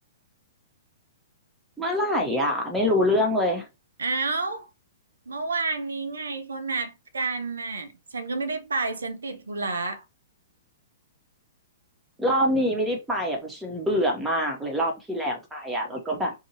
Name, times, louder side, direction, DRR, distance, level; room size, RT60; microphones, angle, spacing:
voice 1, 1.8-3.7 12.2-16.3, equal, 5° right, 1.1 m, -25 dB
voice 2, 4.0-4.7 5.3-10.0, right 3 dB, 80° right, 0.6 m, -30 dB
2.8 x 2.5 x 2.9 m
hypercardioid pair, 115°, 0 cm